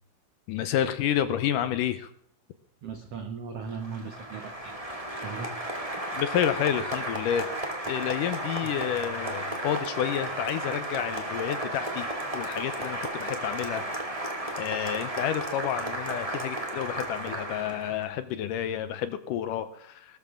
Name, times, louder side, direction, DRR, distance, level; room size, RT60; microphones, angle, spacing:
voice 1, 0.5-2.1 6.1-7.5 7.9-12.1 12.3-13.9 14.1-20.2, left 10 dB, 75° left, 11 dB, 2.0 m, -30 dB
voice 2, 2.8-4.8 5.1-5.5, right 5 dB, 80° right, 6 dB, 1.4 m, -38 dB
Applause, 3.6-18.1, right 1 dB, 15° right, 1.4 m, -34 dB
19.5 x 13.5 x 3.7 m, 0.65 s
omnidirectional pair, 4.4 m